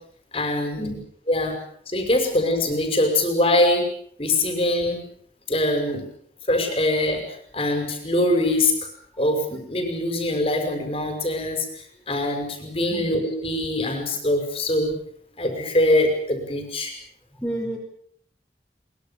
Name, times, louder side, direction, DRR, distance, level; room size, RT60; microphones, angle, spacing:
voice 1, 0.3-0.9 1.3-1.6 1.9-3.9 4.2-5.0 5.5-6.0 6.5-8.7 9.2-14.9 15.4-16.9, left 1 dB, 35° left, 5 dB, 5.8 m, -23 dB
voice 2, 17.4-17.8, right 1 dB, 5° left, -2 dB, 5.4 m, -29 dB
23.0 x 23.0 x 7.2 m, 0.63 s
head